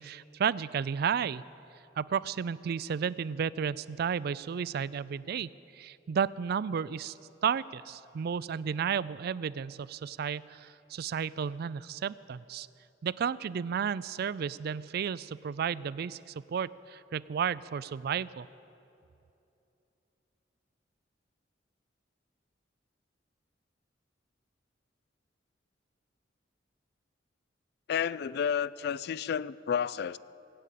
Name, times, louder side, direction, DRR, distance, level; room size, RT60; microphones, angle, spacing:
voice 1, 0.0-1.4 2.0-7.1 7.4-12.7 13.0-18.5, right 7 dB, 55° right, 19 dB, 0.3 m, -33 dB
voice 2, 27.9-30.2, left 8 dB, 60° left, 19 dB, 0.3 m, -31 dB
19.0 x 8.8 x 8.4 m, 2.8 s
head